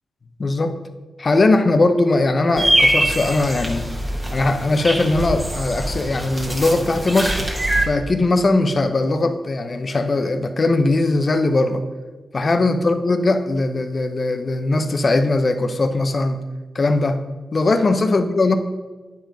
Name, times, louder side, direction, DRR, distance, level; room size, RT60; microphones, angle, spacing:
voice 1, 0.4-0.8 1.2-3.9 4.3-7.5 7.9-11.8 12.3-16.4 16.7-17.2 17.5-18.6, left 2 dB, 45° left, 8 dB, 0.8 m, -19 dB
sound 1, 2.6-7.9, right 1 dB, 20° right, 1.6 m, -23 dB
9.5 x 5.2 x 5.2 m, 1.3 s
cardioid pair, 75°, 0 cm